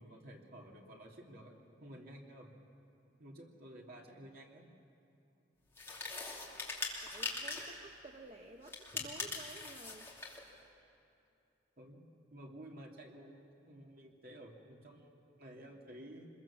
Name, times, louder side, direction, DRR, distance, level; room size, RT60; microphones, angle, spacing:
voice 1, 0.0-1.5 1.8-2.5 3.2-4.7 11.8-16.3, right 1 dB, 55° right, 0 dB, 2.9 m, -53 dB
sound 1, 5.7-7.8 8.6-10.4, left 3 dB, 15° left, 2.9 m, -42 dB
voice 2, 6.5-10.1 10.7-10.9, right 2 dB, 35° right, 3 dB, 1.1 m, -54 dB
25.5 x 22.0 x 7.4 m, 2.7 s
head